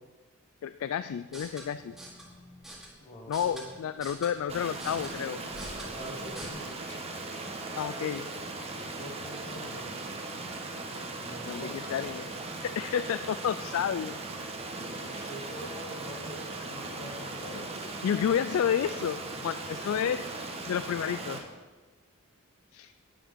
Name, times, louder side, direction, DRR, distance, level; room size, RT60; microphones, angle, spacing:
voice 1, 0.6-2.0 3.3-5.4 6.8-7.1 7.8-8.3 11.5-12.2 12.6-14.6 15.1-15.3 18.0-20.3 20.7-21.4 22.7-22.9, left 8 dB, 70° left, 13 dB, 0.3 m, -31 dB
sound 1, 1.2-6.5, right 1 dB, ahead, 2.1 m, -46 dB
voice 2, 3.0-3.6 5.8-6.7 8.9-9.9 11.2-12.0 14.8-17.7, equal, 35° left, -2 dB, 1.7 m, -44 dB
Stream, 4.5-21.4, right 2 dB, 30° right, 1.2 m, -38 dB
10.0 x 6.1 x 7.4 m, 1.3 s
head